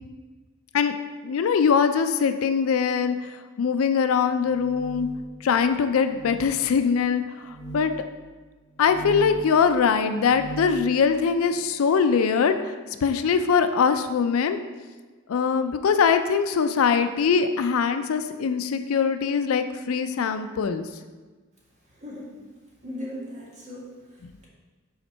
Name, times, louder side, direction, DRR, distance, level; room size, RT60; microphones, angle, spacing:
voice 1, 1.2-5.1 5.4-7.9 8.8-12.7 13.0-14.6 15.3-20.9, left 6 dB, 80° left, 9 dB, 0.4 m, -22 dB
sound 1, 4.4-5.3 6.1-6.4 7.4-7.9 8.7-9.5 10.1-10.8, right 2 dB, 30° left, 1.2 m, -38 dB
voice 2, 21.9-22.4 22.8-24.5, left 1 dB, 35° right, -6 dB, 1.8 m, -38 dB
5.7 x 4.2 x 5.4 m, 1.3 s
head